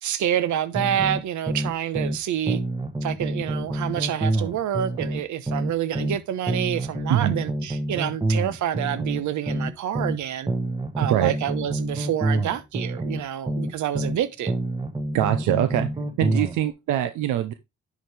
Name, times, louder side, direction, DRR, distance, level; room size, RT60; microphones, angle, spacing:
voice 1, 0.0-2.6 3.0-10.5 11.0-14.6, right 10 dB, 75° right, 1.0 m, -28 dB
sound 1, 0.7-2.2 2.5-6.2 6.5-10.2 10.5-14.2 14.5-16.6, right 1 dB, 15° right, 1.1 m, -27 dB
voice 2, 11.0-11.3 15.1-15.9 16.2-17.5, right 12 dB, 90° right, 0.7 m, -23 dB
10.0 x 4.8 x 3.4 m
cardioid pair, 90°, 30 cm